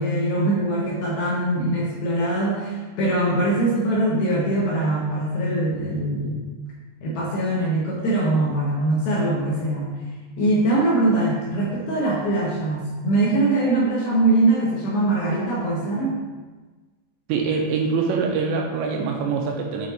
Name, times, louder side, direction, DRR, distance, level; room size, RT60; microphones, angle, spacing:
voice 1, 0.0-6.5 7.0-10.0 10.4-16.1, right 2 dB, 70° left, -5 dB, 2.4 m, -22 dB
voice 2, 17.3-19.9, right 5 dB, 85° right, 1 dB, 2.7 m, -24 dB
8.7 x 3.9 x 4.0 m, 1.3 s
omnidirectional pair, 5.4 m